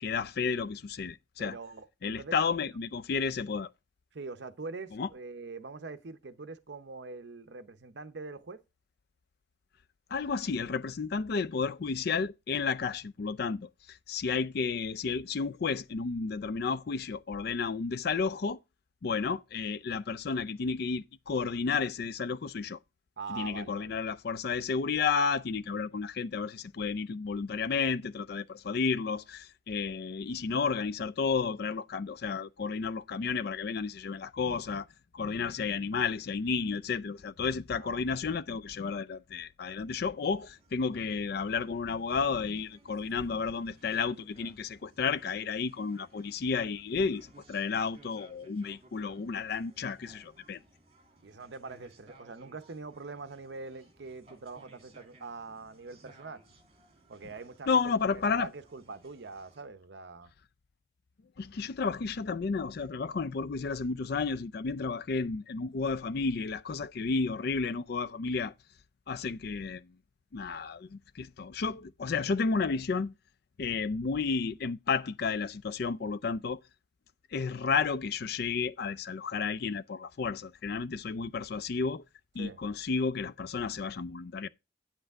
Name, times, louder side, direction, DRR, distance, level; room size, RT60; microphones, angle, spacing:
voice 1, 0.0-1.6 2.0-3.7 4.9-5.1 10.1-18.6 19.0-22.8 23.3-34.9 35.1-50.6 57.7-58.5 61.4-68.5 69.1-70.0 70.3-73.1 73.6-76.6 77.3-82.0 82.3-84.5, left 5 dB, 50° left, 0.4 m, -32 dB
voice 2, 1.4-2.3 4.1-8.6 23.2-24.0 37.8-38.0 51.2-56.4 57.1-60.3 82.4-82.6, right 4 dB, 60° right, 0.7 m, -43 dB
sound 1, 40.2-59.6, right 2 dB, 30° right, 2.3 m, -61 dB
8.7 x 7.9 x 3.5 m
head